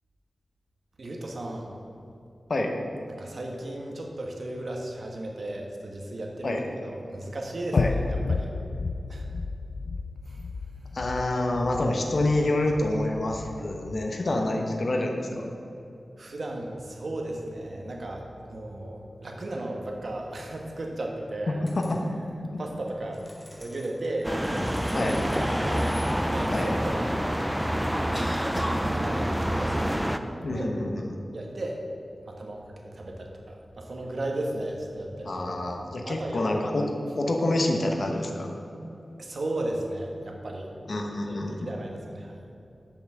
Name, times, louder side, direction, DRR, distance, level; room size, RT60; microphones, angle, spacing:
voice 1, 1.0-1.7 3.2-8.5 9.1-9.2 10.3-10.4 10.8-11.0 16.2-21.6 22.6-23.3 23.5-25.9 26.3-27.8 28.2-30.1 30.5-30.7 31.3-31.8 32.2-35.4 36.0-36.4 39.2-40.7 41.3-42.4, right 1 dB, 60° right, 0 dB, 1.3 m, -35 dB
sound 1, 7.8-14.1, left 4 dB, 85° left, 0.3 m, -32 dB
voice 2, 10.9-15.5 21.5-22.0 22.5-22.6 24.9-25.2 26.5-26.7 30.4-31.1 35.2-38.5 40.9-41.7, left 1 dB, 60° left, 2 dB, 1.1 m, -27 dB
sound 2, 21.7-22.1 22.9-26.7, left 1 dB, 30° left, 1.7 m, -51 dB
sound 3, 24.2-30.2, equal, 5° right, 0.4 m, -27 dB
7.0 x 5.8 x 7.5 m, 2.8 s
wide cardioid pair, 100°, 0 cm